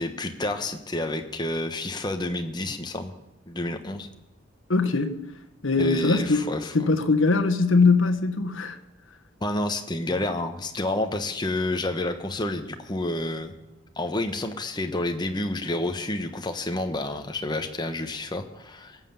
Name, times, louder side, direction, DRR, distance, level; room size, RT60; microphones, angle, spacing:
voice 1, 0.0-3.1 3.5-4.1 5.8-6.9 9.4-13.5 14.0-19.0, left 1 dB, 20° left, 1.1 m, -29 dB
voice 2, 4.7-5.2 5.6-6.4 6.7-8.8, left 3 dB, 70° left, 1.3 m, -21 dB
19.5 x 7.7 x 7.0 m
head